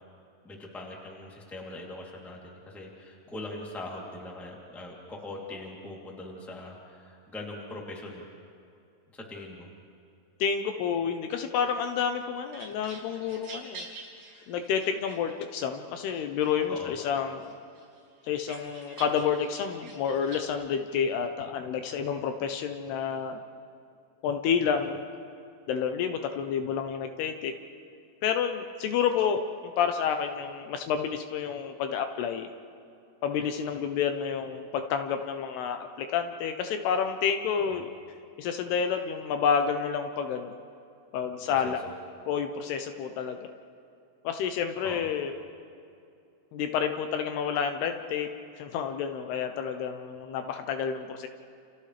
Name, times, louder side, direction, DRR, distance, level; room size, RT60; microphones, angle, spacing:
voice 1, 0.4-8.2 9.1-9.7 16.7-16.9 37.6-37.8 41.5-41.9 44.8-45.1, left 2 dB, ahead, -2 dB, 1.7 m, -41 dB
voice 2, 10.4-13.9 14.5-17.5 18.2-23.4 24.2-25.0 25.7-27.5 28.2-32.5 33.2-37.9 38.4-40.5 41.1-41.8 42.3-43.4 44.2-45.3 46.5-48.3 48.6-51.3, left 7 dB, 75° left, 6 dB, 2.7 m, -29 dB
sound 1, 12.1-15.6 16.1-17.0 17.4-20.5, right 3 dB, 60° right, 7.4 m, -47 dB
29.5 x 29.5 x 3.3 m, 2.5 s
omnidirectional pair, 5.0 m